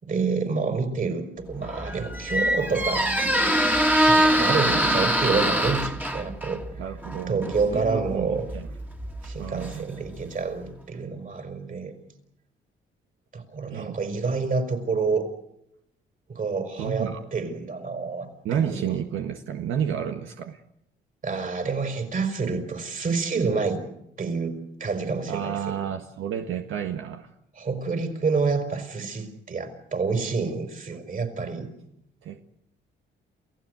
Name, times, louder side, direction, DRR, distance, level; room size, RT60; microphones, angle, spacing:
voice 1, 0.0-3.5 3.9-6.6 7.3-8.5 9.2-11.9 13.3-15.3 16.3-18.9 21.2-23.8 24.2-25.8 27.6-31.7, right 4 dB, 45° right, 7 dB, 5.4 m, -28 dB
Squeak, 1.5-10.3, right 1 dB, 10° right, 2.4 m, -24 dB
voice 2, 6.8-8.7 9.3-9.8 13.7-14.0 16.8-17.2 18.4-20.6 25.3-27.3 32.2-32.4, right 8 dB, 80° right, 5 dB, 1.6 m, -31 dB
28.5 x 16.0 x 8.1 m, 0.78 s
cardioid pair, 90°, 20 cm